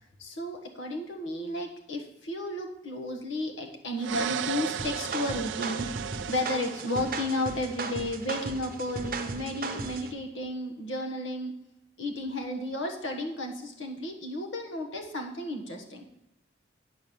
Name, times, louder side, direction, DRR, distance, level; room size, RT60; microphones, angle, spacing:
voice 1, 0.2-5.9 6.3-11.5 12.0-16.0, left 1 dB, 90° left, 3 dB, 1.4 m, -33 dB
sound 1, 4.0-7.9, right 8 dB, 85° right, 0.4 m, -35 dB
sound 2, 4.8-10.1, right 3 dB, 50° right, 0.7 m, -36 dB
9.5 x 4.6 x 7.0 m, 0.89 s
head